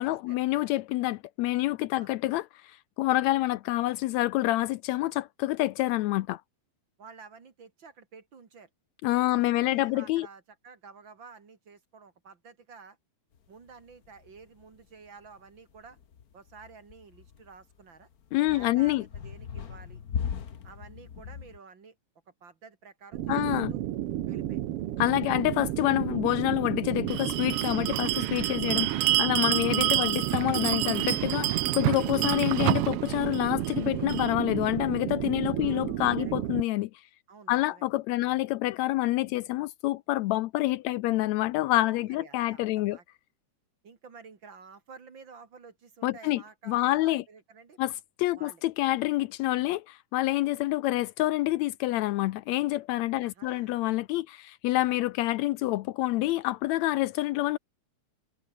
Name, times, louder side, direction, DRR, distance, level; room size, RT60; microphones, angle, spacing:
voice 1, 0.0-6.4 9.0-10.3 18.3-19.0 23.3-23.7 25.0-36.9 37.5-43.0 46.0-47.2 47.8-47.9 48.2-57.6, left 17 dB, 80° left, 1.8 m, -27 dB
voice 2, 7.0-8.7 9.3-13.0 13.5-16.0 16.3-18.1 18.5-20.0 20.6-22.0 22.4-23.8 24.3-24.6 25.2-25.4 35.6-36.3 37.3-37.8 38.2-38.4 41.8-43.0 43.8-47.9 48.4-48.6 53.2-53.7, right 5 dB, 40° right, 2.7 m, -51 dB
sound 1, 13.3-21.6, left 7 dB, 50° left, 1.2 m, -39 dB
sound 2, 23.1-36.6, right 13 dB, 65° right, 1.5 m, -32 dB
Bell, 27.1-34.3, right 16 dB, 80° right, 2.2 m, -29 dB
omnidirectional pair, 3.4 m